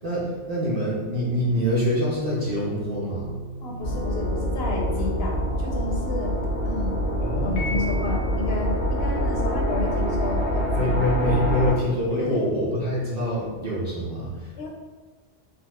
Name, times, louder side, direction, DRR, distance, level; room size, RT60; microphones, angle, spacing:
voice 1, 0.0-3.3 7.2-7.8 10.7-14.7, equal, 45° right, -6 dB, 0.6 m, -25 dB
sound 1, 1.9-7.2, right 2 dB, 30° left, 0.4 m, -39 dB
voice 2, 3.6-6.4 6.6-7.0 7.3-11.3 12.1-12.4 14.6-14.7, left 3 dB, 70° left, -1 dB, 0.8 m, -31 dB
sound 2, 3.8-11.7, equal, 75° right, 1.5 m, -25 dB
Piano, 7.6-8.7, left 2 dB, 90° left, 1.0 m, -36 dB
4.0 x 2.3 x 2.2 m, 1.3 s
omnidirectional pair, 1.2 m